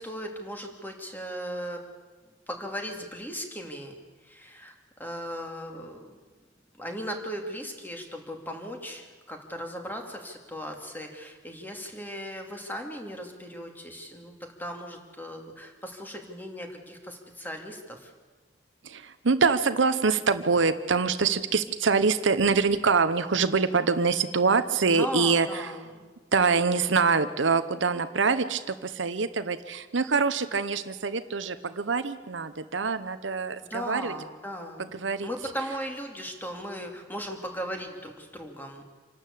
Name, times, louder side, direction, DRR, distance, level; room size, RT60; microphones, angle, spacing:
voice 1, 0.0-1.8 2.5-3.9 4.2-6.1 6.7-18.1 24.9-25.8 33.6-38.8, equal, 10° left, 3 dB, 2.5 m, -37 dB
voice 2, 18.8-25.7 26.3-34.1 34.9-35.3, right 4 dB, 75° right, 11 dB, 0.9 m, -25 dB
27.0 x 12.5 x 8.4 m, 1.4 s
head